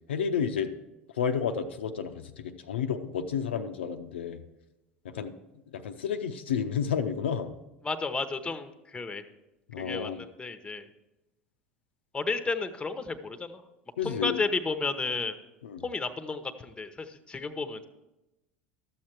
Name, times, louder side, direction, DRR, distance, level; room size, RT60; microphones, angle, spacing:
voice 1, 0.1-0.7 1.1-4.4 5.0-5.3 5.7-7.5 9.7-10.2 14.0-14.4 15.6-15.8, left 7 dB, 75° left, 6 dB, 0.5 m, -31 dB
voice 2, 7.8-9.2 9.8-10.9 12.1-13.6 14.0-15.3 15.8-17.9, left 4 dB, 15° left, 10 dB, 0.8 m, -32 dB
12.5 x 7.5 x 4.5 m, 0.99 s
figure-of-eight pair, 75°, 6 cm